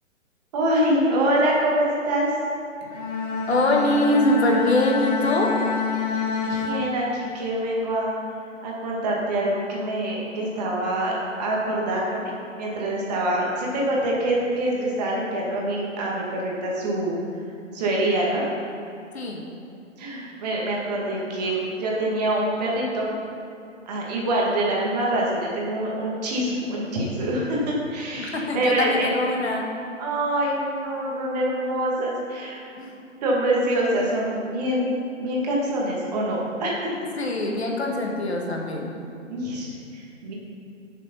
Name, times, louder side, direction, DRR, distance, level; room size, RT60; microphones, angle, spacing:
voice 1, 0.5-2.3 6.3-8.1 8.6-11.1 11.4-17.1 17.7-18.4 20.0-23.1 23.9-29.1 30.0-32.6 33.2-36.9 39.3-40.3, right 1 dB, 30° right, -3 dB, 2.1 m, -25 dB
Bowed string instrument, 2.8-7.5, left 5 dB, 30° left, 1.3 m, -27 dB
voice 2, 3.5-5.5 19.1-19.5 28.2-29.7 32.8-32.9 37.2-38.9, left 1 dB, 55° left, 0 dB, 1.7 m, -23 dB
10.5 x 6.8 x 5.4 m, 2.6 s
figure-of-eight pair, 130°, 38 cm